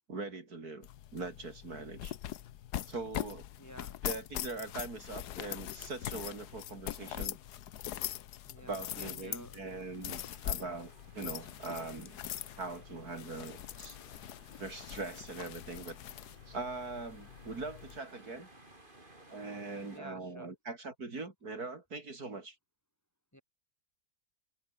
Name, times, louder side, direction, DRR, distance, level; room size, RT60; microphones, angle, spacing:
voice 1, 0.1-2.2 2.9-3.5 4.0-7.4 8.6-12.2 12.6-14.0 14.6-16.0 16.5-18.5 19.3-22.6, right 3 dB, 70° right, 4.2 m, -42 dB
sound 1, 0.8-18.0, left 12 dB, 80° left, 1.4 m, -42 dB
voice 2, 3.6-4.0 8.4-9.6 19.9-20.6 23.3-23.4, equal, 10° left, 5.4 m, -52 dB
sound 2, 9.7-20.0, right 1 dB, 30° right, 5.1 m, -59 dB
omnidirectional pair, 1.7 m